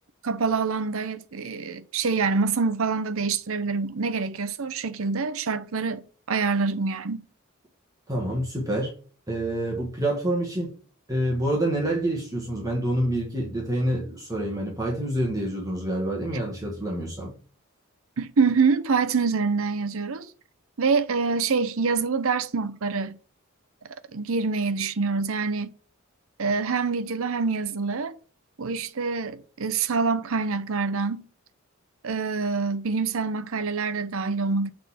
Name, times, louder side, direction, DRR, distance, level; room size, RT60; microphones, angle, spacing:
voice 1, 0.2-7.2 18.2-20.3 20.8-23.2 24.1-25.7 26.4-28.1 28.6-31.3 32.0-34.7, right 4 dB, 70° right, 0.6 m, -26 dB
voice 2, 8.1-8.9 9.3-10.7 11.1-17.3, right 1 dB, 15° right, 1.6 m, -27 dB
7.1 x 3.8 x 5.8 m
head